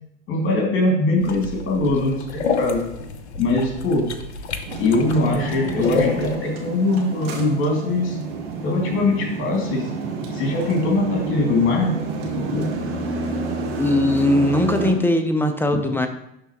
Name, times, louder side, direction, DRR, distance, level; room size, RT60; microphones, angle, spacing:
voice 1, 0.3-2.9 3.4-4.1 4.8-8.2 8.6-9.9 10.3-12.0 12.3-12.7 15.7-16.0, left 2 dB, 40° left, 0 dB, 2.6 m, -22 dB
sound 1, 1.2-6.4, left 5 dB, 80° left, 0.7 m, -28 dB
sound 2, 4.6-14.9, right 3 dB, 60° right, 1.5 m, -29 dB
voice 2, 13.8-16.1, left 1 dB, 5° left, 6 dB, 0.7 m, -19 dB
11.0 x 3.8 x 3.0 m, 0.80 s
figure-of-eight pair, 75°, 33 cm